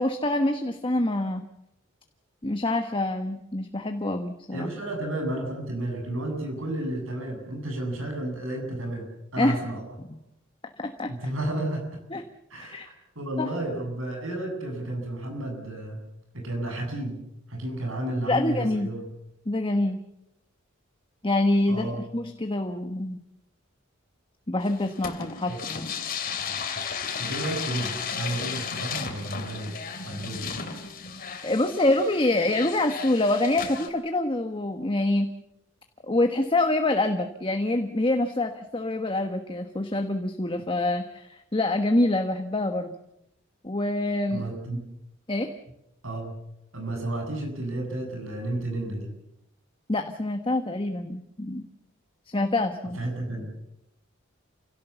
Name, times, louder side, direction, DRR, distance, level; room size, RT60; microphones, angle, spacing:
voice 1, 0.0-1.4 2.4-4.7 9.4-9.6 10.8-11.1 12.1-12.2 12.7-12.9 13.4-13.5 18.3-18.9 19.5-20.0 21.2-23.2 24.5-25.9 31.4-35.3 36.0-42.9 43.6-44.4 45.3-45.5 49.9-51.7 52.3-53.0, left 2 dB, 25° left, 6 dB, 1.3 m, -26 dB
voice 2, 4.5-9.1 9.3-9.8 11.1-12.0 12.5-16.0 16.3-17.2 17.5-19.0 21.7-22.0 25.5-25.6 27.2-29.7 30.0-30.5 44.3-44.8 46.0-46.3 46.7-49.1 53.0-53.5, right 1 dB, 75° right, 3 dB, 7.9 m, -32 dB
sound 1, 24.6-33.9, left 6 dB, 45° left, 3.1 m, -34 dB
29.0 x 17.5 x 7.1 m, 0.84 s
head